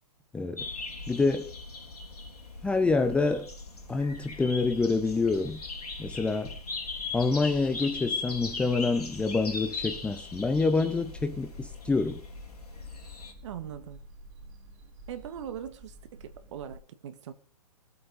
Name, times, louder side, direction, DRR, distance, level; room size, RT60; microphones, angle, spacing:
voice 1, 0.3-0.7 1.1-1.5 2.6-3.5 3.9-5.6 6.0-6.6 7.1-12.2, left 3 dB, 5° left, 0.7 m, -27 dB
sound 1, 0.6-13.3, left 4 dB, 75° left, 3.9 m, -39 dB
sound 2, 2.6-16.8, right 1 dB, 30° right, 5.6 m, -50 dB
voice 2, 13.4-14.0 15.1-17.3, right 9 dB, 50° right, 2.1 m, -41 dB
20.0 x 8.3 x 5.4 m
hypercardioid pair, 135°, 20 cm